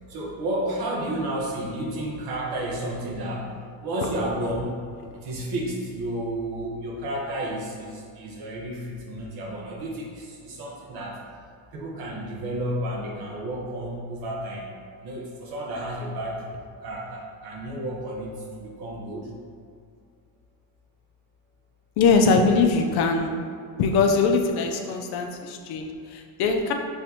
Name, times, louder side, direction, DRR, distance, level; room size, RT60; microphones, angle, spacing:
voice 1, 0.1-3.5 3.8-4.8 5.1-11.2 11.7-14.7 15.0-16.4 16.8-19.3, right 1 dB, 80° right, -3 dB, 1.2 m, -31 dB
voice 2, 22.0-23.3 23.8-26.7, left 4 dB, 90° left, 4 dB, 0.6 m, -21 dB
5.7 x 3.2 x 2.8 m, 2.3 s
cardioid pair, 115°, 37 cm